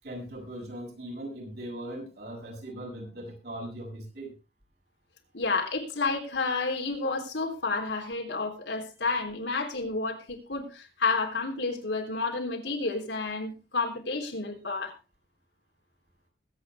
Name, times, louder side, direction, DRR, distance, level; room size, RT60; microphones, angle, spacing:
voice 1, 0.0-4.3, right 1 dB, 60° right, -1 dB, 7.2 m, -39 dB
voice 2, 5.3-14.9, left 3 dB, 85° left, 2 dB, 3.5 m, -30 dB
21.5 x 9.0 x 3.5 m, 0.30 s
head